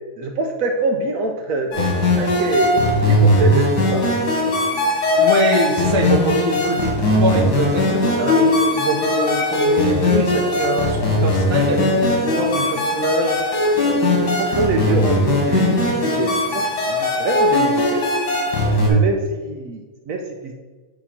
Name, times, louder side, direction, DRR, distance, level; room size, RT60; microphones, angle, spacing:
voice 1, 0.2-2.8 3.0-4.1 13.7-18.0 18.6-20.5, right 2 dB, 70° right, 3 dB, 0.9 m, -25 dB
sound 1, 1.7-18.9, left 1 dB, 90° left, 2.1 m, -19 dB
voice 2, 5.2-13.4, right 1 dB, 25° right, 0 dB, 0.7 m, -23 dB
8.1 x 3.0 x 5.6 m, 1.4 s
omnidirectional pair, 1.7 m